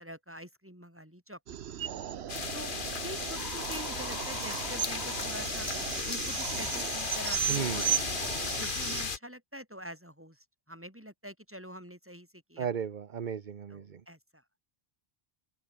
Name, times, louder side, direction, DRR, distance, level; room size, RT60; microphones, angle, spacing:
voice 1, 0.0-1.4 1.7-2.0 2.5-2.7 3.0-5.7 6.1-7.9 8.6-12.7 13.7-14.4, equal, 10° right, 7.9 m, -45 dB
sound 1, 1.5-9.1, right 9 dB, 85° right, 1.1 m, -36 dB
sound 2, 2.3-9.2, left 5 dB, 55° left, 1.4 m, -35 dB
voice 2, 7.5-7.8 12.6-14.0, right 7 dB, 50° right, 1.0 m, -34 dB
open air
omnidirectional pair, 1.1 m